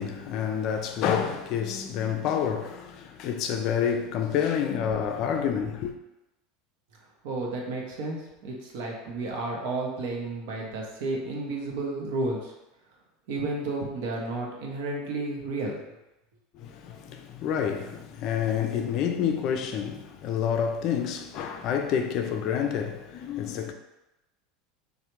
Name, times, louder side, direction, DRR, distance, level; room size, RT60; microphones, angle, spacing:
voice 1, 0.0-5.9 16.5-23.7, left 8 dB, 55° left, 0.3 m, -28 dB
voice 2, 7.2-12.5 13.3-15.8, right 2 dB, 65° right, 0.7 m, -32 dB
3.2 x 2.1 x 2.9 m
hypercardioid pair, 80°, 0 cm